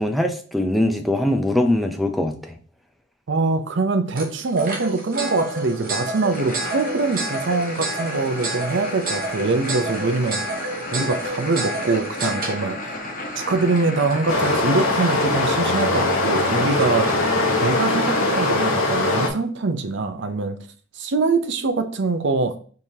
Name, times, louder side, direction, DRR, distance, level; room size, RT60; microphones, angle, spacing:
voice 1, 0.0-2.3, left 1 dB, ahead, 5 dB, 0.5 m, -21 dB
voice 2, 3.3-10.4 10.9-13.1 13.3-17.1 17.6-20.6 21.0-22.6, right 3 dB, 60° right, 7 dB, 0.6 m, -23 dB
sound 1, 4.2-18.9, right 2 dB, 45° right, 1.2 m, -31 dB
sound 2, 6.3-18.7, left 1 dB, 40° left, 0.9 m, -33 dB
Stream, 14.3-19.3, left 2 dB, 90° left, 1.5 m, -21 dB
4.8 x 3.6 x 2.7 m, 0.42 s
head